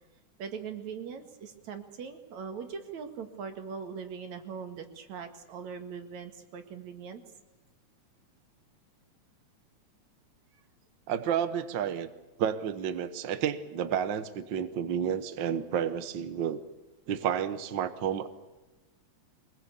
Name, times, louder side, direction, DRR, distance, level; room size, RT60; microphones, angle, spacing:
voice 1, 0.4-7.2, right 6 dB, 70° right, 7 dB, 3.2 m, -41 dB
voice 2, 11.1-12.1 12.4-16.6 17.1-18.3, right 8 dB, 55° right, 10 dB, 1.4 m, -31 dB
24.5 x 20.5 x 8.4 m, 1.1 s
omnidirectional pair, 3.3 m